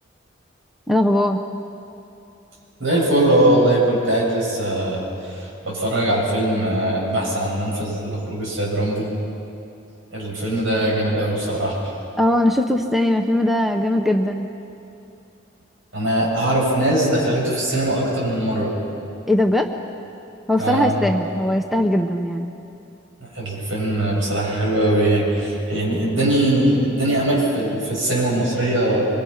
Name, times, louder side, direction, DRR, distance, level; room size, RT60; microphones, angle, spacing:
voice 1, 0.9-1.4 12.2-14.5 19.3-19.7 20.5-22.5, left 1 dB, ahead, 4 dB, 0.8 m, -20 dB
voice 2, 2.8-9.1 10.1-11.9 15.9-18.7 20.6-20.9 23.2-29.1, right 1 dB, 75° right, -3 dB, 7.7 m, -21 dB
24.5 x 24.5 x 5.9 m, 2.7 s
head